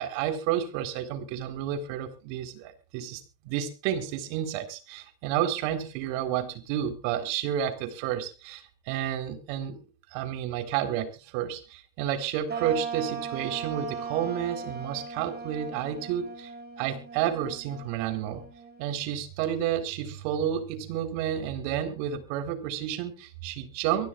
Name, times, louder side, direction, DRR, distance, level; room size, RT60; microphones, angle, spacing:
voice 1, 0.0-9.8 10.1-16.5 16.8-18.4 18.8-24.1, right 10 dB, 75° right, 7 dB, 4.0 m, -31 dB
sound 1, 12.5-19.2, right 5 dB, 20° right, 7.1 m, -38 dB
24.5 x 15.5 x 2.5 m, 0.34 s
cardioid pair, 140°, 49 cm